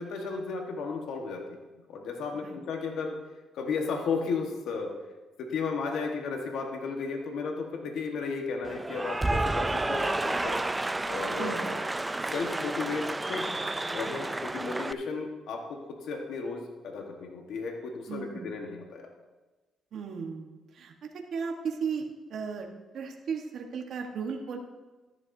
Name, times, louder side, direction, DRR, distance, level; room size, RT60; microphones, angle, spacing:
voice 1, 0.0-1.4 1.9-3.1 3.5-4.9 5.4-10.6 11.1-11.8 12.2-13.6 13.9-19.1, left 4 dB, 80° left, 2 dB, 1.3 m, -34 dB
Cheering / Applause, 8.6-14.9, right 2 dB, 15° right, 0.3 m, -31 dB
voice 2, 18.1-18.5 19.9-22.7 22.9-24.6, right 6 dB, 65° right, 2 dB, 1.2 m, -35 dB
13.5 x 10.5 x 2.7 m, 1.2 s
cardioid pair, 90°, 0 cm